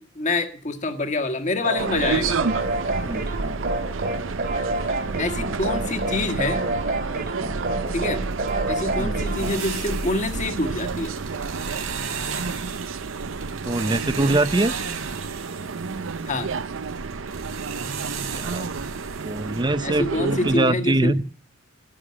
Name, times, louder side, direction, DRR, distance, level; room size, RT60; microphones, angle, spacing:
voice 1, 0.1-2.4 5.2-6.6 7.9-8.2 8.7-11.1 16.2-16.5 19.8-21.1, left 2 dB, 35° left, 7 dB, 1.7 m, -26 dB
sound 1, 1.6-9.6, right 2 dB, 50° right, 2.7 m, -29 dB
sound 2, 1.8-20.6, right 4 dB, 65° right, 0.6 m, -30 dB
sound 3, 7.9-19.6, right 6 dB, 85° right, 3.3 m, -36 dB
voice 2, 13.6-14.7 18.3-18.7 19.2-21.2, right 2 dB, 20° right, 15 dB, 0.6 m, -23 dB
11.5 x 10.0 x 8.7 m, 0.42 s
head